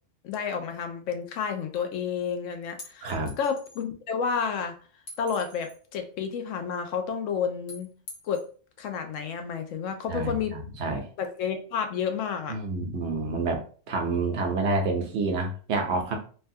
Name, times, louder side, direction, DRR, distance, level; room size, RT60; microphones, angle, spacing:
voice 1, 0.2-4.8 5.2-7.9 8.2-8.4 8.8-10.5 11.2-12.6, left 6 dB, 85° left, 7 dB, 0.9 m, -30 dB
sound 1, 2.8-3.8 5.1-5.8 7.7-8.5, left 2 dB, 60° left, 1.0 m, -45 dB
voice 2, 3.0-3.3 10.1-11.0 12.5-13.6 13.9-16.2, right 3 dB, 65° right, 3 dB, 0.9 m, -28 dB
3.2 x 2.2 x 2.6 m, 0.40 s
omnidirectional pair, 1.3 m